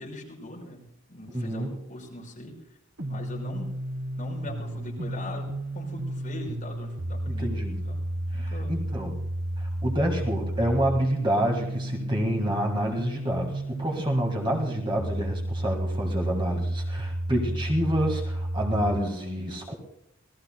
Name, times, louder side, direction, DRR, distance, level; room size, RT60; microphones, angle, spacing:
voice 1, 0.0-2.5 3.0-3.8 4.2-5.5 5.7-8.0 8.3-8.8, left 1 dB, 35° left, -2 dB, 5.2 m, -41 dB
voice 2, 1.3-1.7 7.4-7.8 8.3-9.2 9.6-19.7, equal, 20° right, 1 dB, 1.7 m, -28 dB
sound 1, 3.0-19.0, right 1 dB, 65° right, 1.1 m, -32 dB
27.0 x 18.0 x 2.2 m, 0.79 s
head